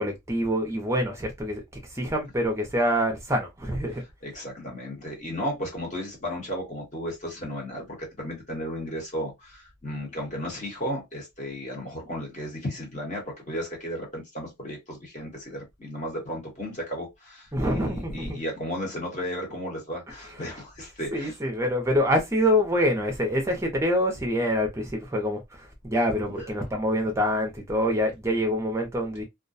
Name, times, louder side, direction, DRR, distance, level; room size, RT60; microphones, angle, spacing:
voice 1, 0.0-4.0 17.5-18.4 21.1-29.2, equal, 10° right, 0.5 m, -26 dB
voice 2, 4.2-21.3 26.3-26.5, equal, 30° left, 0.9 m, -34 dB
2.3 x 2.1 x 2.5 m
head